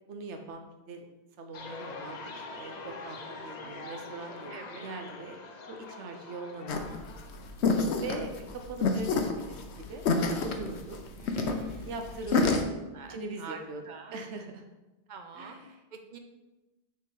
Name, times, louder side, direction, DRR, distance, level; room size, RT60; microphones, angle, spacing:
voice 1, 0.1-1.0 1.4-2.2 2.5-5.4 5.7-6.9 8.0-10.0 10.4-11.0 11.8-12.5 13.1-13.8 14.1-14.7 15.3-15.8, right 3 dB, 80° right, 4 dB, 1.0 m, -41 dB
sound 1, 1.5-7.5, left 3 dB, 50° left, 0.6 m, -44 dB
voice 2, 4.5-4.9 11.2-11.9 12.4-12.6 12.9-14.2 15.1-15.6 15.9-16.2, right 3 dB, 50° right, 5 dB, 0.7 m, -45 dB
sound 2, 6.7-12.6, left 4 dB, 75° left, 0.9 m, -28 dB
6.6 x 3.2 x 5.2 m, 1.1 s
omnidirectional pair, 1.2 m